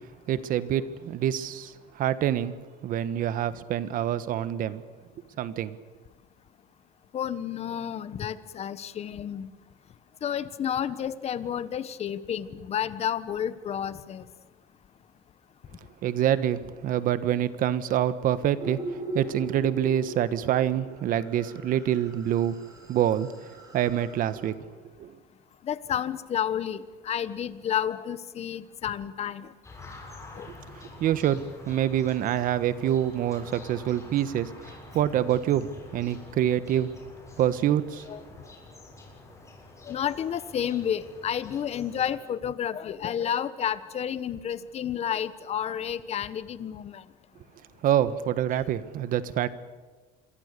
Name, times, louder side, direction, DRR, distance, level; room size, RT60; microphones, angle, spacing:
voice 1, 0.3-2.5 2.8-4.8 5.4-5.7 16.0-22.6 22.9-23.3 23.7-24.5 25.0-25.1 30.7-36.9 37.4-38.0 47.8-49.5, right 11 dB, 50° right, 14 dB, 1.4 m, -26 dB
voice 2, 7.1-9.5 10.2-14.2 25.6-29.5 30.3-30.5 38.1-38.2 39.9-47.0, left 9 dB, 35° left, 14 dB, 1.3 m, -31 dB
sound 1, 18.6-24.5, right 1 dB, 20° right, 4.8 m, -40 dB
sound 2, 29.6-42.1, left 2 dB, 15° left, 7.6 m, -48 dB
27.5 x 23.0 x 6.8 m, 1.3 s
cardioid pair, 135°, 18 cm